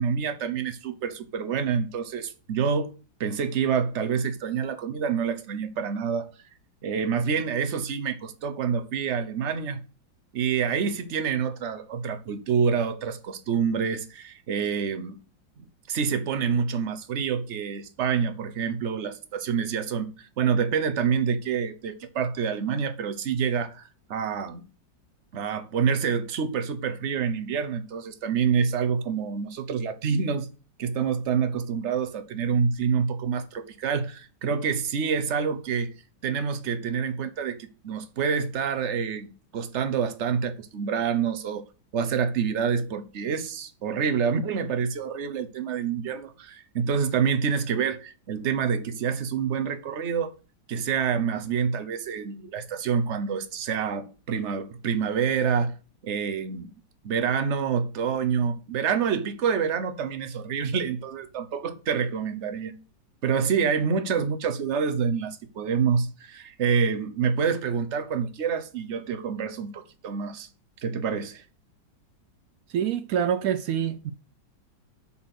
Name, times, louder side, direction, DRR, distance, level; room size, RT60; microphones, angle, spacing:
voice 1, 0.0-2.9 3.2-6.3 6.8-9.8 10.3-15.2 15.9-24.6 25.3-30.5 30.8-35.9 36.2-41.6 41.9-50.3 50.7-55.7 56.0-56.7 57.0-62.8 63.2-70.5 70.8-71.4, right 6 dB, 50° right, 0.9 m, -27 dB
voice 2, 72.7-74.1, right 9 dB, 85° right, 0.7 m, -26 dB
7.5 x 4.2 x 6.0 m
omnidirectional pair, 2.1 m